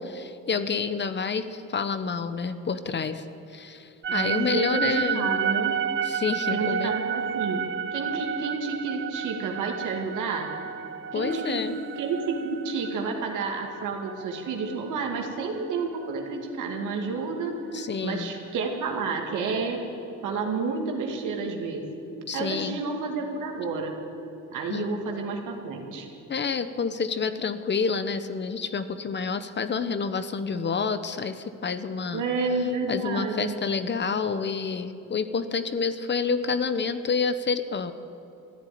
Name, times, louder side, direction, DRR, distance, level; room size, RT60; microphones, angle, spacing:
voice 1, 0.0-3.2 3.5-5.4 6.0-6.9 11.1-11.8 17.7-18.3 22.3-22.8 24.7-25.0 26.3-32.2 32.9-37.9, left 5 dB, 35° left, 11 dB, 0.9 m, -28 dB
sound 1, 4.0-16.2, right 8 dB, 40° right, 0.6 m, -31 dB
voice 2, 4.1-5.7 6.5-7.6 7.9-10.5 11.1-11.6 12.0-17.5 18.0-19.8 20.2-21.8 22.3-23.9 24.5-26.1 32.1-33.6, right 4 dB, 85° right, 2 dB, 2.4 m, -30 dB
14.5 x 10.5 x 9.5 m, 2.9 s
cardioid pair, 90°, 30 cm